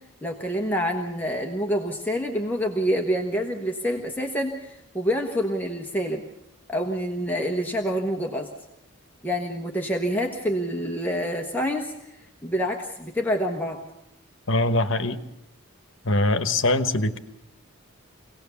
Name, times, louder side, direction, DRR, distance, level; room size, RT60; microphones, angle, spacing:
voice 1, 0.2-6.2 6.7-8.5 9.2-13.8, equal, 10° left, 1 dB, 1.2 m, -27 dB
voice 2, 14.5-15.2 16.0-17.2, left 2 dB, 60° left, 9 dB, 1.2 m, -22 dB
25.0 x 18.0 x 7.0 m, 0.87 s
head